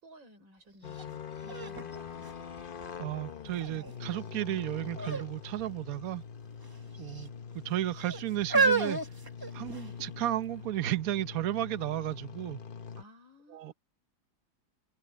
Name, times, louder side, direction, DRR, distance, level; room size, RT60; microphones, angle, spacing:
voice 1, 0.0-2.3 13.0-13.7, right 1 dB, 90° right, 5.5 m, -56 dB
sound 1, 0.8-13.0, left 6 dB, 45° left, 0.7 m, -44 dB
sound 2, 0.9-1.0 1.5-3.0 3.6-4.1 4.9-5.3 5.6-5.7 6.6-7.3 8.0-10.0 10.8-10.9, right 3 dB, 15° right, 0.9 m, -31 dB
voice 2, 3.0-6.2 7.0-9.0 9.5-12.6 13.5-13.7, right 14 dB, 55° right, 1.2 m, -33 dB
omnidirectional pair, 2.0 m